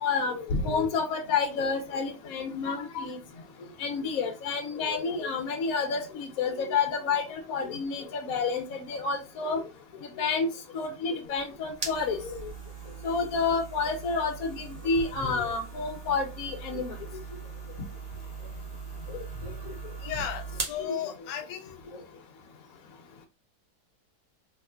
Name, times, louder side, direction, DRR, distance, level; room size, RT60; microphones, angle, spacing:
voice 1, 0.0-3.2 3.8-9.6 10.2-10.5 10.7-12.5 13.0-16.9 19.1-19.2, left 4 dB, 60° left, 1.2 m, -29 dB
sound 1, 11.2-20.8, right 4 dB, 35° right, 0.7 m, -40 dB
voice 2, 20.0-21.8, left 9 dB, 85° left, 1.2 m, -35 dB
3.5 x 3.0 x 2.4 m
omnidirectional pair, 1.9 m